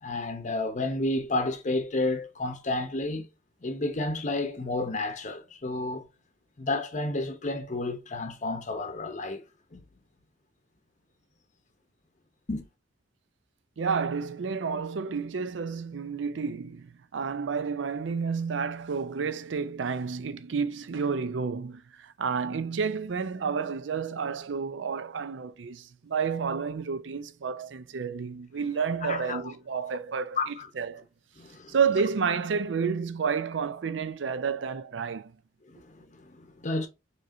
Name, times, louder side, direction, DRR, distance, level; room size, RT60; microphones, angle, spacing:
voice 1, 0.0-3.3 3.6-6.1 6.6-9.4 9.7-9.8 12.5-12.7 29.0-29.5 30.4-30.7 31.4-31.7 35.7-36.9, left 2 dB, 40° left, 0.7 m, -31 dB
voice 2, 13.8-31.0 31.7-35.3, right 5 dB, 80° right, 0.5 m, -30 dB
5.1 x 3.1 x 2.6 m
head